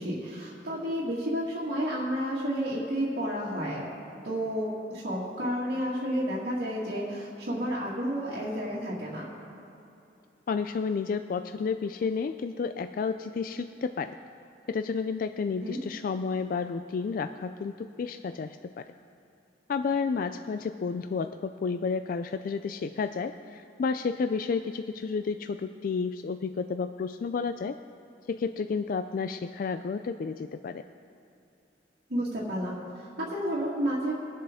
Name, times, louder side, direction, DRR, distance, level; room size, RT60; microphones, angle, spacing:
voice 1, 0.0-3.9 4.2-9.3 15.6-15.8 32.1-34.1, equal, 70° right, -7 dB, 2.0 m, -31 dB
voice 2, 10.5-14.1 14.7-18.9 19.7-27.8 28.3-30.8, left 5 dB, 50° left, 9 dB, 0.3 m, -31 dB
22.5 x 7.7 x 3.6 m, 2.8 s
head